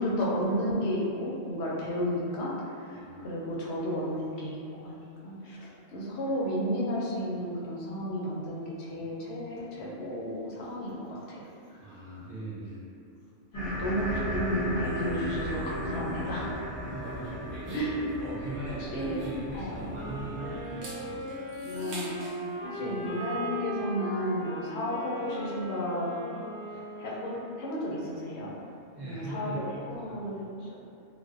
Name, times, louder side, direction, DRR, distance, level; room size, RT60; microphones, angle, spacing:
voice 1, 0.0-11.9 13.5-16.5 17.7-18.0 18.8-19.2 19.5-19.8 21.6-22.2 22.6-26.1 26.7-28.5 29.0-30.8, equal, 65° left, -5 dB, 0.8 m, -33 dB
voice 2, 2.9-3.2 11.8-12.8 16.7-17.2 17.6-17.8 18.3-21.2 22.8-23.0 29.0-29.6 30.0-30.2, right 2 dB, 65° right, -10 dB, 0.4 m, -40 dB
sound 1, 13.5-20.6, equal, 40° left, 0.5 m, -36 dB
sound 2, 17.0-20.2 20.6-22.4, right 1 dB, 85° right, 1.0 m, -44 dB
sound 3, 19.8-27.7, equal, 50° right, 0.9 m, -38 dB
2.5 x 2.1 x 2.4 m, 2.5 s
omnidirectional pair, 1.3 m